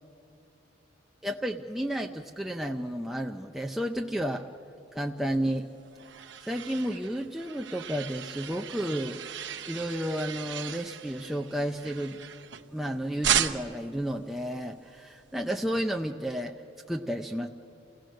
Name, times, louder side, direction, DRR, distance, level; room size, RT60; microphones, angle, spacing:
voice 1, 1.2-4.5 4.9-5.7 6.4-9.2 9.6-12.2 12.7-16.5 16.9-17.5, equal, ahead, 1 dB, 0.4 m, -32 dB
sound 1, 5.5-12.8 13.2-13.9, right 9 dB, 65° right, 0.8 m, -35 dB
28.5 x 17.0 x 6.5 m, 2.8 s
head